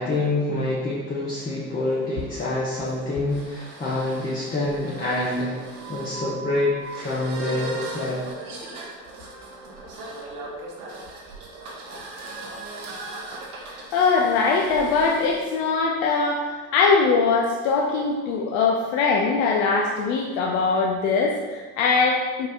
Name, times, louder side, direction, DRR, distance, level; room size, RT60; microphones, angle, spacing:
voice 1, 0.0-5.6 5.9-8.2, left 2 dB, 20° left, -6 dB, 0.9 m, -26 dB
sound 1, 1.7-15.4, right 3 dB, 70° right, 1.2 m, -39 dB
voice 2, 13.9-22.5, left 4 dB, 50° left, 0 dB, 0.6 m, -21 dB
4.7 x 4.6 x 2.4 m, 1.4 s
figure-of-eight pair, 65°, 46 cm